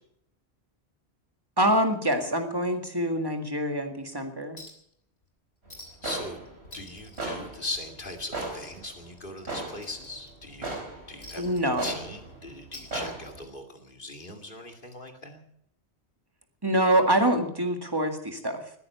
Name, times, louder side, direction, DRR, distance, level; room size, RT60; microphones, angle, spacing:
voice 1, 1.6-4.6 11.4-12.0 16.6-18.7, right 1 dB, 20° right, 5 dB, 2.0 m, -25 dB
Chink clink, 4.6-4.9 5.2-5.3 5.7-6.2 6.5-8.2 8.5-8.7 9.1-10.5 11.2-12.3 12.6-13.5 14.6-14.7, left 1 dB, 70° left, 3.3 m, -48 dB
sound 1, 5.6-13.5, right 2 dB, 70° right, 4.5 m, -38 dB
voice 2, 6.0-6.4 6.7-10.8 11.1-15.4, left 2 dB, 50° left, 4 dB, 2.6 m, -39 dB
20.5 x 9.8 x 6.8 m, 0.71 s
omnidirectional pair, 1.1 m